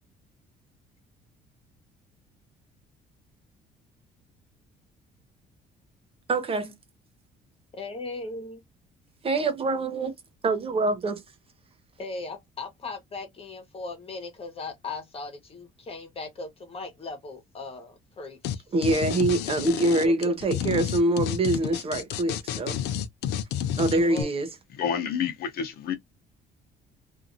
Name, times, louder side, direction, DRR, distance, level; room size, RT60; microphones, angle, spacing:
voice 1, 6.3-6.8 9.2-10.1 10.4-11.2 18.7-22.8 23.8-24.5, right 2 dB, 35° right, 0.7 m, -25 dB
voice 2, 7.7-8.6 12.0-18.6 20.0-20.3 24.0-24.3, left 3 dB, 35° left, 1.2 m, -38 dB
sound 1, 18.4-18.5 18.8-24.2, left 10 dB, 85° left, 0.5 m, -30 dB
voice 3, 24.7-25.9, left 8 dB, 65° left, 0.8 m, -29 dB
2.7 x 2.4 x 2.6 m
cardioid pair, 110°, 17 cm